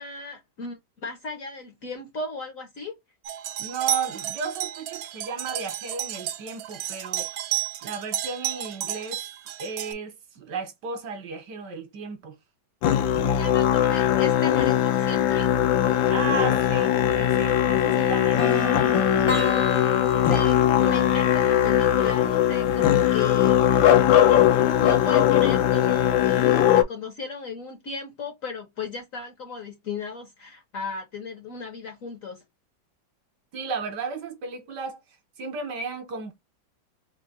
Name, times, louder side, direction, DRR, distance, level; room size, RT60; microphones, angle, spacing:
voice 1, 0.0-2.9 13.3-15.6 20.3-23.8 24.3-32.4, left 4 dB, 55° left, 1.0 m, -36 dB
sound 1, 3.2-9.9, right 11 dB, 85° right, 0.8 m, -32 dB
voice 2, 3.6-7.3 7.8-9.2 9.6-12.4 16.1-19.1 33.5-35.0 35.4-36.3, right 5 dB, 65° right, 1.4 m, -34 dB
Musical instrument, 12.8-26.8, left 11 dB, 85° left, 1.5 m, -20 dB
sound 2, 18.4-22.3, left 3 dB, 35° left, 0.5 m, -30 dB
3.7 x 2.1 x 4.0 m
omnidirectional pair, 2.1 m